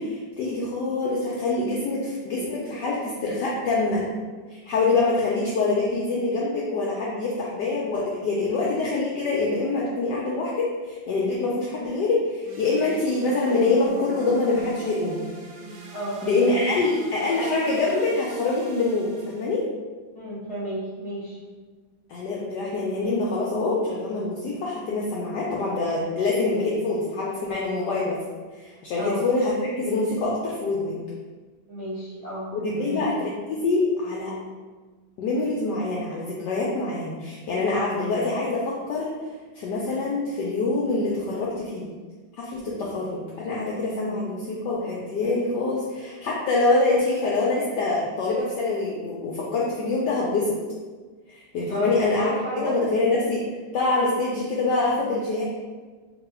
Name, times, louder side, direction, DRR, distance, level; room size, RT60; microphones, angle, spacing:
voice 1, 0.0-4.0 4.5-15.2 16.2-19.6 22.1-28.2 28.5-31.0 32.5-34.3 35.2-39.1 39.5-41.9 42.4-50.6 51.3-52.3 52.6-53.4 53.7-55.4, left 3 dB, 75° left, -4 dB, 0.9 m, -25 dB
sound 1, 12.4-19.6, right 2 dB, 65° right, 1.1 m, -41 dB
voice 2, 15.9-16.5 20.1-21.4 29.0-29.2 31.7-32.5 32.7-33.0 44.0-44.3 51.7-51.9 52.2-53.2, right 1 dB, 20° left, -9 dB, 0.5 m, -32 dB
3.0 x 2.6 x 4.2 m, 1.4 s
omnidirectional pair, 2.3 m